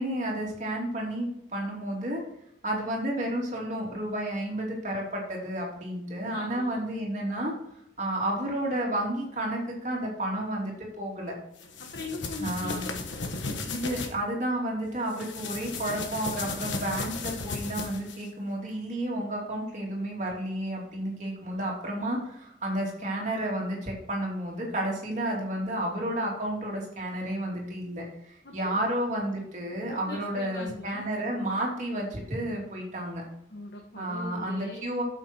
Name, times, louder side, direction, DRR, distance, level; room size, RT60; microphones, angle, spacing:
voice 1, 0.0-2.2 2.6-7.5 8.0-11.4 12.4-12.8 13.5-33.2 33.9-35.0, right 1 dB, 40° right, -1 dB, 2.8 m, -31 dB
voice 2, 6.3-6.8 11.8-12.9 28.4-28.8 29.9-31.1 33.5-34.9, left 2 dB, 60° left, 1 dB, 1.3 m, -41 dB
sound 1, 11.6-14.1 15.1-18.3, left 3 dB, 80° left, 1.4 m, -35 dB
9.0 x 7.5 x 4.4 m, 0.74 s
head